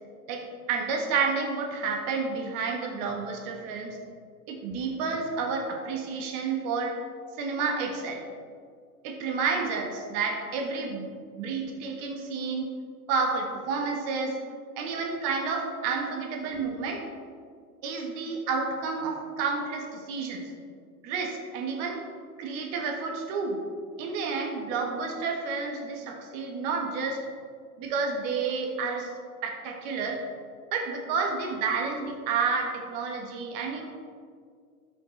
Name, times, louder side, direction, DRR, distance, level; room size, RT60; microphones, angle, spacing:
voice 1, 0.7-4.0 4.5-7.0 7.4-8.2 9.0-11.1 11.4-12.7 13.1-14.3 14.8-17.0 17.8-20.4 21.0-22.0 22.4-23.6 24.0-27.2 27.8-29.1 29.4-30.2 30.7-33.9, right 4 dB, 40° right, 2 dB, 1.5 m, -30 dB
12.0 x 5.3 x 3.3 m, 2.1 s
figure-of-eight pair, 95°, 46 cm